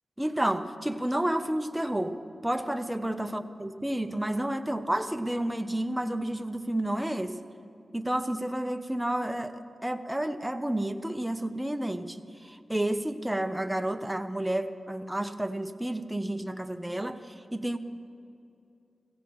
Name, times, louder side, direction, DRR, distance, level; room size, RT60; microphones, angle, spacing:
voice 1, 0.2-7.4 7.9-17.8, right 1 dB, 10° right, 7 dB, 0.7 m, -31 dB
17.0 x 16.0 x 3.1 m, 2.6 s
wide cardioid pair, 70°, 0 cm